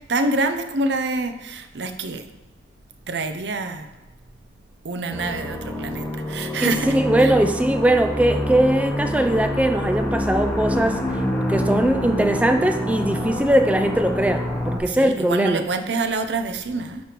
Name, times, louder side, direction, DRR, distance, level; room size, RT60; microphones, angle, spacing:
voice 1, 0.1-2.3 3.1-3.9 4.8-7.3 14.9-17.0, right 3 dB, 80° right, 8 dB, 0.6 m, -26 dB
sound 1, 5.1-14.8, equal, 10° left, 0.9 m, -26 dB
voice 2, 6.6-11.0 11.5-15.6, right 1 dB, 10° right, 7 dB, 0.3 m, -20 dB
7.2 x 5.2 x 3.0 m, 1.1 s
head